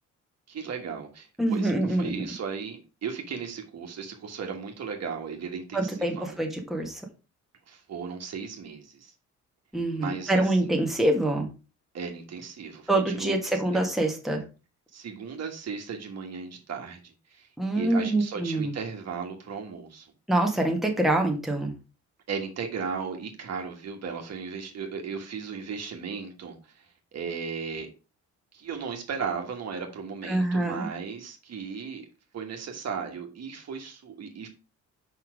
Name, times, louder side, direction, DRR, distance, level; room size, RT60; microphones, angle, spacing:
voice 1, 0.5-6.4 7.7-9.1 9.9-10.8 11.9-13.4 14.9-17.5 17.7-20.1 22.3-27.9 28.5-32.0 32.3-34.5, right 6 dB, 60° right, 1.6 m, -36 dB
voice 2, 1.4-2.2 5.7-7.0 9.7-11.5 12.9-14.4 17.6-18.7 20.3-21.7 30.3-30.9, right 1 dB, ahead, 1.7 m, -25 dB
5.4 x 4.5 x 5.0 m
cardioid pair, 90°, 30 cm